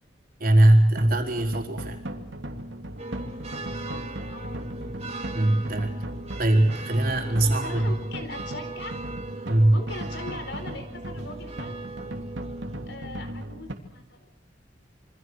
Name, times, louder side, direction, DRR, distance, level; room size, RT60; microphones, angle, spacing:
voice 1, 0.4-2.0 5.3-5.9 6.4-7.9 9.5-9.8, right 1 dB, 50° right, 3 dB, 4.5 m, -20 dB
sound 1, 1.0-13.7, right 1 dB, 70° right, 3.0 m, -37 dB
sound 2, 3.0-13.0, right 3 dB, 35° right, 3.0 m, -40 dB
voice 2, 3.7-4.7 5.7-6.0 7.4-8.9 9.7-11.8 12.9-14.3, left 2 dB, 60° left, 8 dB, 4.6 m, -41 dB
27.5 x 25.5 x 6.4 m, 0.67 s
head